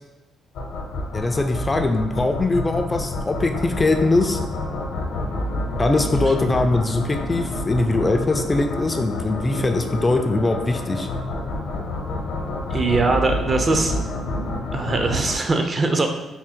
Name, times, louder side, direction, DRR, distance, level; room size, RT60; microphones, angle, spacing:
sound 1, 0.5-15.4, left 2 dB, 80° left, 0.7 m, -28 dB
voice 1, 1.1-4.4 5.8-11.1, left 2 dB, 25° left, 5 dB, 0.3 m, -21 dB
voice 2, 12.7-13.9 14.7-16.1, right 3 dB, 35° right, 5 dB, 0.5 m, -21 dB
3.6 x 2.1 x 4.3 m, 1.1 s
cardioid pair, 90°, 0 cm